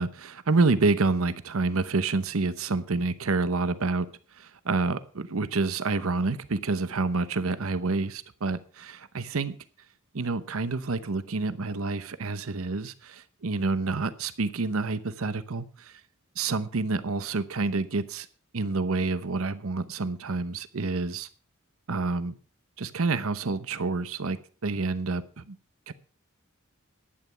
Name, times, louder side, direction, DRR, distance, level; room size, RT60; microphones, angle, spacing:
voice 1, 0.0-4.1 4.3-9.5 10.1-16.0 16.4-18.3 18.5-21.3 21.9-22.4 22.8-25.6 25.9-26.0, right 3 dB, 75° right, 14 dB, 0.8 m, -28 dB
11.5 x 9.3 x 5.7 m, 0.40 s
head